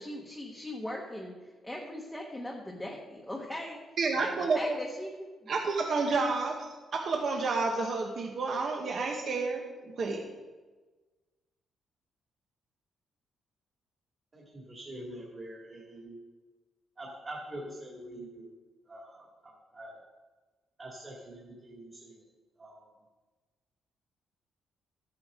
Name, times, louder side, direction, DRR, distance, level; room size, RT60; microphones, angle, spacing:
voice 1, 0.0-1.3 1.6-3.8 4.2-5.5, left 1 dB, 5° left, -2 dB, 1.2 m, -40 dB
voice 2, 4.0-4.8 5.5-6.7 6.9-10.3, right 3 dB, 45° right, 1 dB, 1.2 m, -30 dB
voice 3, 14.3-16.2 17.0-18.5 18.9-20.0 20.8-22.2 22.6-22.9, right 1 dB, 25° right, -3 dB, 2.2 m, -45 dB
13.5 x 9.5 x 3.8 m, 1.3 s
cardioid pair, 160°, 0 cm